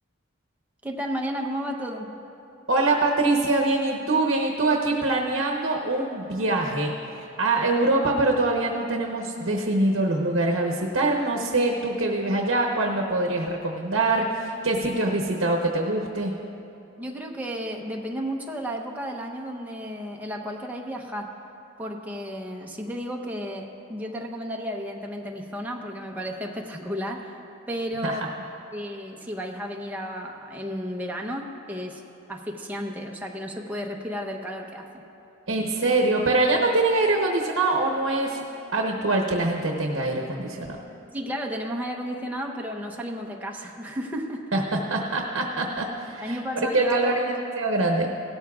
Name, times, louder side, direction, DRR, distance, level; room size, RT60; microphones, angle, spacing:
voice 1, 0.8-2.1 17.0-21.3 21.8-27.3 27.7-28.2 28.7-32.0 32.3-35.0 41.1-44.5 46.2-47.2, equal, 10° right, 0 dB, 0.7 m, -33 dB
voice 2, 2.7-6.9 7.4-16.3 28.0-28.1 35.5-38.4 38.7-40.8 44.5-48.1, right 2 dB, 65° right, 1 dB, 0.9 m, -24 dB
17.0 x 13.5 x 2.4 m, 2.8 s
head